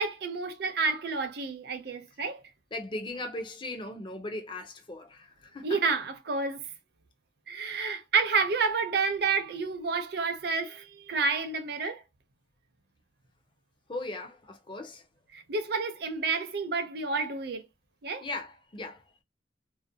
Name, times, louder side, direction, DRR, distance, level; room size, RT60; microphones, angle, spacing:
voice 1, 0.0-2.4 5.6-6.6 7.5-12.0 15.3-17.6 18.0-18.3, right 4 dB, 60° right, 0.5 m, -29 dB
voice 2, 2.7-5.8 13.9-15.0 18.2-19.0, left 2 dB, 25° left, 0.4 m, -38 dB
2.4 x 2.1 x 2.6 m
head